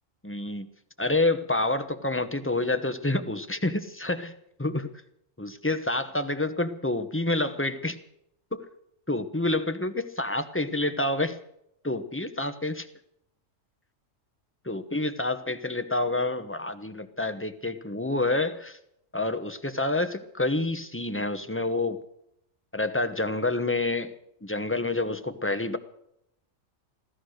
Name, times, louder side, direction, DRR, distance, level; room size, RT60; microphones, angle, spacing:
voice 1, 0.2-0.7 1.0-4.3 4.6-4.9 5.4-8.0 8.5-8.7 9.1-11.4 11.8-12.8 14.7-18.8 19.1-22.0 22.7-24.1 24.4-25.8, left 2 dB, 10° left, 9 dB, 0.9 m, -28 dB
16.0 x 13.0 x 6.5 m, 0.76 s
omnidirectional pair, 1.3 m